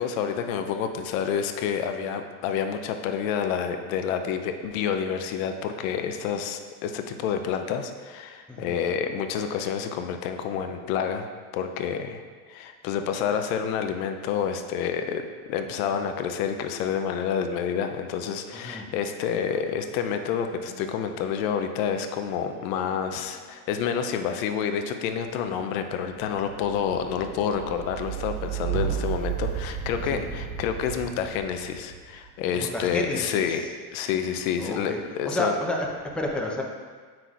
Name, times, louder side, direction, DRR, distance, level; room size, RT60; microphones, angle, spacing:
voice 1, 0.0-12.2 12.5-33.7 33.9-35.5, left 7 dB, 65° left, 7 dB, 0.7 m, -28 dB
voice 2, 8.5-8.8 18.5-18.9 30.1-30.2 32.5-33.7 34.6-35.0 35.3-36.6, left 1 dB, ahead, -1 dB, 0.7 m, -31 dB
sound 1, 16.6-18.0 18.2-33.3 34.0-34.6, right 8 dB, 20° right, 1.1 m, -37 dB
7.6 x 5.9 x 2.5 m, 1.5 s
hypercardioid pair, 100°, 45 cm